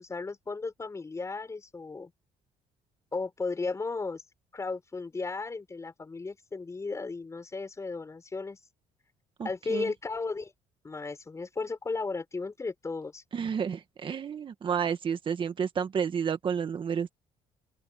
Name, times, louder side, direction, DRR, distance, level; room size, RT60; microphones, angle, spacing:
voice 1, 0.0-2.1 3.1-4.2 4.5-8.6 9.4-10.5 10.8-13.2, left 3 dB, 25° left, 6.0 m, -35 dB
voice 2, 9.4-9.9 13.3-17.1, right 7 dB, 40° right, 1.6 m, -31 dB
open air
cardioid pair, 100°, 13 cm